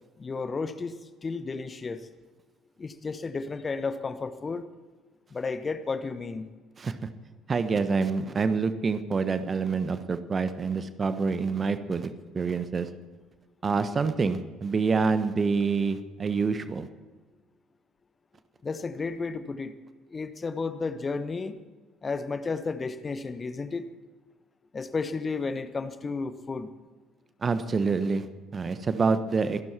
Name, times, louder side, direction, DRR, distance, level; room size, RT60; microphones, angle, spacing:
voice 1, 0.2-0.9 1.2-2.1 2.8-4.6 5.3-6.5 18.6-19.7 20.1-21.5 22.0-23.9 24.7-26.7, left 4 dB, 30° left, 11 dB, 1.2 m, -32 dB
voice 2, 7.5-12.9 13.6-16.9 27.4-28.3 28.5-29.6, right 4 dB, 30° right, 11 dB, 1.2 m, -27 dB
25.5 x 12.5 x 4.4 m, 1.3 s
figure-of-eight pair, 55°, 0 cm